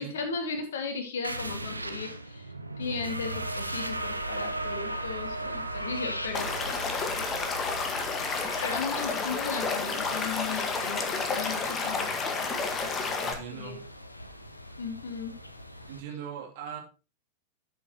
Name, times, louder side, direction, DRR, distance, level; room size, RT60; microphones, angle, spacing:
voice 1, 0.0-2.5 2.8-6.7 8.6-12.3 13.5-13.8 14.8-15.3, left 5 dB, 65° left, 6 dB, 2.2 m, -36 dB
sound 1, 1.2-10.5, right 2 dB, 85° right, 0.7 m, -37 dB
sound 2, 2.8-16.0, left 1 dB, 85° left, 0.9 m, -44 dB
Stream / Liquid, 6.3-13.3, left 4 dB, 25° left, 1.7 m, -30 dB
voice 2, 13.2-13.9 15.9-16.8, right 8 dB, 50° right, 0 dB, 3.2 m, -40 dB
13.0 x 7.0 x 3.1 m, 0.31 s
figure-of-eight pair, 90°, 0 cm